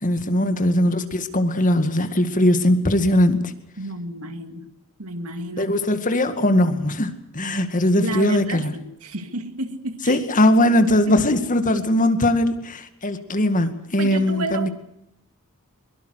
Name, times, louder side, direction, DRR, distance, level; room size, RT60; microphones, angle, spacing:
voice 1, 0.0-3.5 5.6-8.7 10.1-14.7, left 1 dB, 35° left, 8 dB, 2.2 m, -20 dB
voice 2, 3.8-4.7 5.0-5.7 8.0-10.2 11.1-11.2 14.0-14.7, right 2 dB, 75° right, 8 dB, 2.4 m, -31 dB
23.0 x 23.0 x 6.5 m, 0.78 s
head